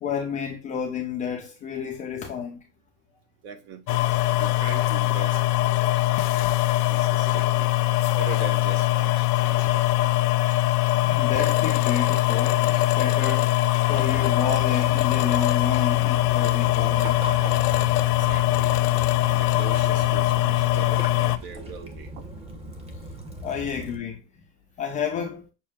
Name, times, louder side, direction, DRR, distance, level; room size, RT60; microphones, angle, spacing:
voice 1, 0.0-2.6 11.0-17.4 23.4-24.2 24.8-25.4, left 7 dB, 15° left, 0.4 m, -30 dB
voice 2, 3.4-6.4 6.9-7.7 8.2-10.1 18.2-18.7 19.3-22.2, right 7 dB, 60° right, 1.2 m, -41 dB
sound 1, 3.9-21.4, left 16 dB, 75° left, 0.6 m, -22 dB
Waves surf / Splash splatter / Trickle dribble, 13.9-24.0, right 1 dB, 15° right, 0.8 m, -39 dB
6.3 x 2.2 x 3.5 m
hypercardioid pair, 115°, 48 cm